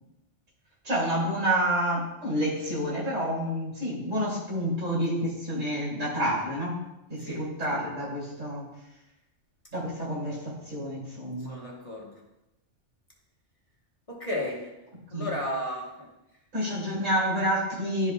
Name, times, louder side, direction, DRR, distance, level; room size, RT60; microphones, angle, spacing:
voice 1, 0.8-6.8 7.1-8.7 9.7-11.6 15.1-15.3 16.5-18.1, equal, 85° right, -6 dB, 3.1 m, -29 dB
voice 2, 7.2-7.8 11.5-12.1 14.1-14.7 15.1-16.1, left 1 dB, 30° left, -3 dB, 1.2 m, -34 dB
11.5 x 5.1 x 2.2 m, 0.92 s
omnidirectional pair, 1.3 m